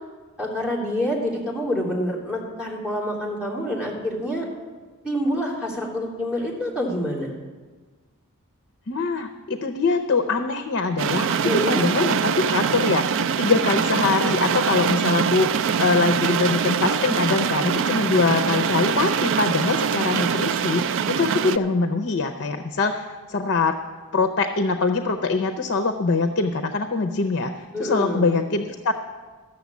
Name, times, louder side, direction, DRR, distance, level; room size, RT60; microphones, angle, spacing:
voice 1, 0.4-4.5 5.0-7.3 11.4-11.8 27.7-28.3, equal, 5° right, -4 dB, 2.9 m, -27 dB
voice 2, 8.9-11.3 11.7-13.1 13.4-15.5 15.8-23.8 24.1-28.9, left 3 dB, 55° left, 7 dB, 0.6 m, -23 dB
sound 1, 11.0-21.6, right 7 dB, 60° right, 0.4 m, -23 dB
13.0 x 6.8 x 8.3 m, 1.4 s
head